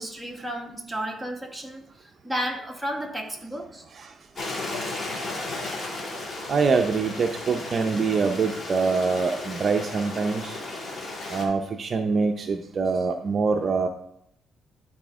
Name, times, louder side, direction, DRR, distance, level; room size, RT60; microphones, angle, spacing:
voice 1, 0.0-1.8 2.2-3.8 5.3-5.4, equal, 5° right, 1 dB, 1.5 m, -32 dB
Stream, 4.4-11.4, left 2 dB, 30° left, 2.2 m, -34 dB
voice 2, 6.5-10.6 11.3-13.9, right 4 dB, 45° right, 5 dB, 0.6 m, -24 dB
11.5 x 4.2 x 3.7 m, 0.74 s
cardioid pair, 90°, 0 cm